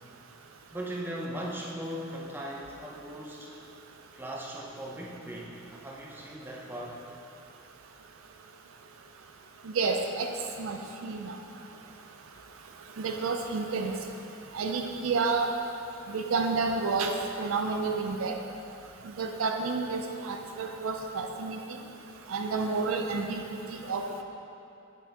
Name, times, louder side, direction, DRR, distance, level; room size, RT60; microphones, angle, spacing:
voice 1, 0.7-3.5 4.1-7.0, right 1 dB, 10° right, -3 dB, 0.6 m, -38 dB
voice 2, 9.7-10.3 10.6-11.3 13.0-13.9 14.5-15.5 16.1-17.1 17.4-18.3 19.2-21.6 22.3-23.6 23.9-24.2, right 4 dB, 65° right, 3 dB, 0.4 m, -30 dB
8.4 x 5.6 x 2.9 m, 2.7 s
head